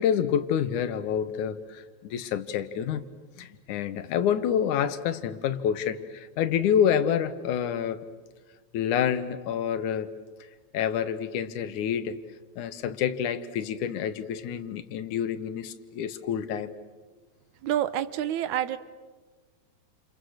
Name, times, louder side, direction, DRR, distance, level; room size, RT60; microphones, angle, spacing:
voice 1, 0.0-3.1 3.4-8.0 8.7-10.1 10.7-12.2 12.6-16.7, left 8 dB, 90° left, 13 dB, 2.7 m, -28 dB
voice 2, 17.6-18.8, right 11 dB, 80° right, 14 dB, 2.4 m, -27 dB
29.5 x 28.5 x 6.5 m, 1.4 s
omnidirectional pair, 3.4 m